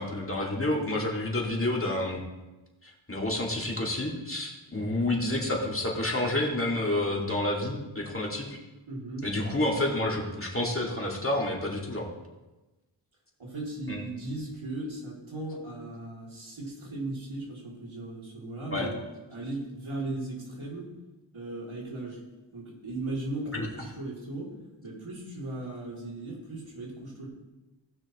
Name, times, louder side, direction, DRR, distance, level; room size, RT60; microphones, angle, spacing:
voice 1, 0.0-2.2 2.8-8.6 9.2-12.1 13.9-14.0 18.7-18.9 23.5-23.7, left 1 dB, 25° left, -2 dB, 2.4 m, -29 dB
voice 2, 8.9-9.3 9.7-10.0 13.4-19.0 19.3-20.9 21.3-22.2 22.5-24.5 24.8-27.3, right 2 dB, 75° right, -4 dB, 3.1 m, -37 dB
18.0 x 6.1 x 3.1 m, 1.1 s
wide cardioid pair, 50°, 48 cm